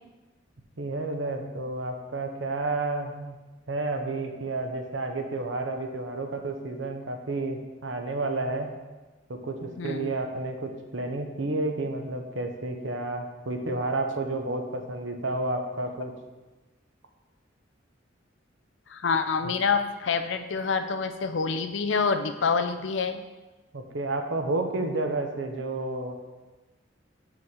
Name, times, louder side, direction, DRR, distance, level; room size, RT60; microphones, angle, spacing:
voice 1, 0.8-3.4 3.7-8.7 9.3-16.1 19.4-19.5 23.7-26.2, right 2 dB, 80° right, 4 dB, 0.9 m, -31 dB
voice 2, 9.8-10.1 18.9-23.2, left 5 dB, 70° left, 9 dB, 0.5 m, -27 dB
5.5 x 4.9 x 6.4 m, 1.2 s
head